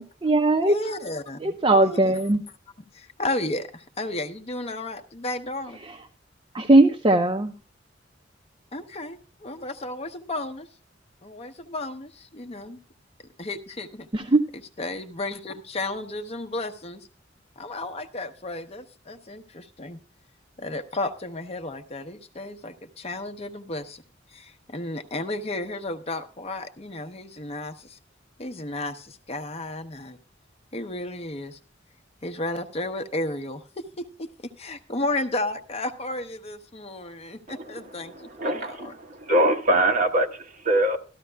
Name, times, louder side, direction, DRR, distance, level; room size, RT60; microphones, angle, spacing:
voice 1, 0.0-0.8 1.4-2.4 5.8-6.0 6.5-7.5 14.1-14.4, right 2 dB, 25° right, 0.6 m, -19 dB
voice 2, 0.6-1.6 1.8-2.2 2.9-5.8 8.7-10.7 11.2-12.8 13.4-14.1 14.5-17.1 17.6-20.0 20.6-24.0 24.3-28.0 28.4-30.2 30.7-31.6 32.2-38.9, left 2 dB, 35° left, 0.8 m, -33 dB
voice 3, 38.4-39.0 39.3-40.3 40.6-41.0, right 1 dB, 45° right, 1.2 m, -22 dB
13.5 x 13.0 x 2.2 m
head